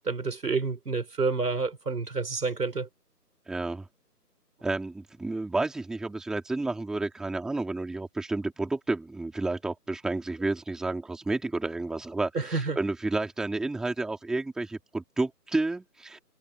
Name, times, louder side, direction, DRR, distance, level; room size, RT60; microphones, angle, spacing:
voice 1, 0.0-2.9 12.3-12.8, right 4 dB, 70° right, 4.5 m, -29 dB
voice 2, 3.5-3.9 4.6-16.2, right 2 dB, ahead, 2.9 m, -31 dB
figure-of-eight pair, 165°, 49 cm